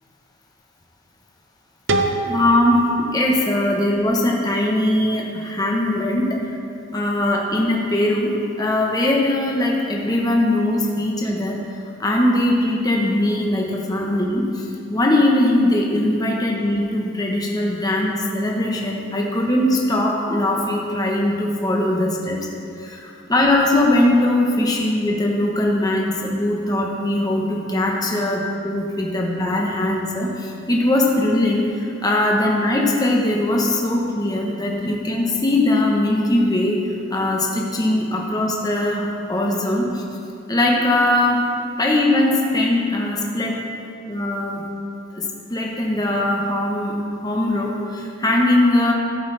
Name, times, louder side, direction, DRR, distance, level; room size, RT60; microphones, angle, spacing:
sound 1, 1.9-4.7, right 2 dB, 65° right, 0.7 m, -27 dB
voice 1, 2.2-6.4 6.9-8.3 8.6-11.6 12.0-22.4 22.8-36.8 37.1-40.0 40.5-41.4 41.8-43.6 44.1-44.6 45.1-45.2 45.5-46.9 47.2-48.9, left 1 dB, 20° left, -2 dB, 1.0 m, -20 dB
13.5 x 7.9 x 3.3 m, 2.6 s
head